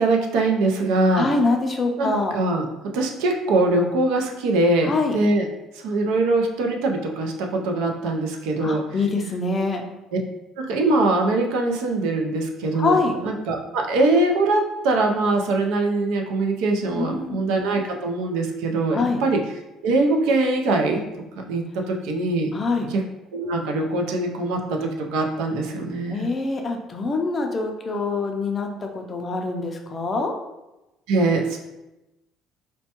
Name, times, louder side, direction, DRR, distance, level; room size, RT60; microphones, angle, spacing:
voice 1, 0.0-1.3 2.0-2.1 2.3-2.6 2.9-5.4 5.7-8.8 10.1-10.2 10.6-13.0 13.2-19.4 19.8-21.0 21.4-22.5 22.9-23.0 23.3-26.3 31.1-31.6, right 2 dB, 85° right, 3 dB, 0.5 m, -22 dB
voice 2, 1.1-2.4 4.8-5.2 8.6-9.8 12.7-13.1 16.9-17.4 18.9-19.2 22.5-22.9 26.1-30.3, left 3 dB, 25° left, 3 dB, 0.4 m, -24 dB
4.3 x 2.2 x 2.9 m, 0.98 s
cardioid pair, 155°, 0 cm